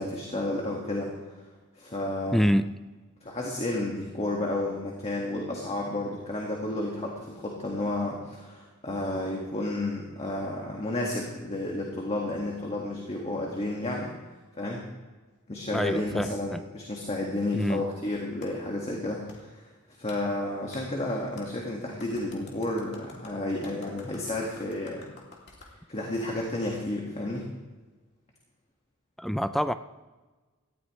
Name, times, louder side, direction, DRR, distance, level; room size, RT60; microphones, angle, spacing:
voice 1, 0.0-1.4 1.7-2.4 3.2-14.1 14.6-14.8 15.5-19.7 20.0-25.0 25.9-27.5, left 1 dB, 30° left, -1 dB, 1.8 m, -31 dB
voice 2, 2.3-2.8 15.7-16.6 17.5-17.9 29.2-29.7, equal, ahead, 11 dB, 0.3 m, -26 dB
Clapping, 18.4-18.5 19.3-19.4 20.1-20.2 20.7-20.8 21.4-21.5 22.0-25.7, left 3 dB, 50° left, 2.9 m, -50 dB
18.0 x 14.0 x 3.2 m, 1.3 s
head